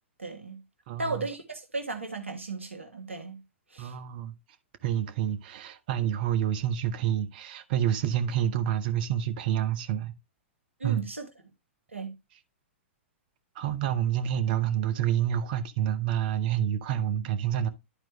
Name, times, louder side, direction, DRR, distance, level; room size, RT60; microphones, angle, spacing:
voice 1, 0.2-0.6 1.0-3.4 3.7-3.9 10.8-11.3 11.9-12.1, right 3 dB, 85° right, 1.4 m, -35 dB
voice 2, 0.9-1.2 3.8-4.3 4.8-10.1 10.8-11.1 13.6-17.7, right 10 dB, 45° right, 0.8 m, -28 dB
11.5 x 4.5 x 3.0 m
figure-of-eight pair, 105°, 7 cm